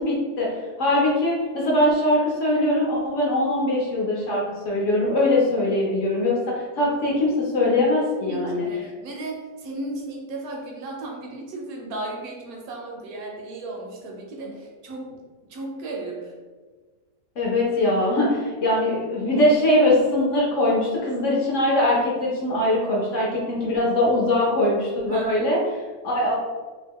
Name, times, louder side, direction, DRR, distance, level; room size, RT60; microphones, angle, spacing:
voice 1, 0.0-8.7 17.4-25.6 26.0-26.4, left 1 dB, 60° left, -4 dB, 0.9 m, -22 dB
voice 2, 8.2-15.2 15.5-16.3 25.1-25.5, right 2 dB, 75° right, 0 dB, 1.0 m, -35 dB
2.9 x 2.2 x 3.4 m, 1.4 s
omnidirectional pair, 1.7 m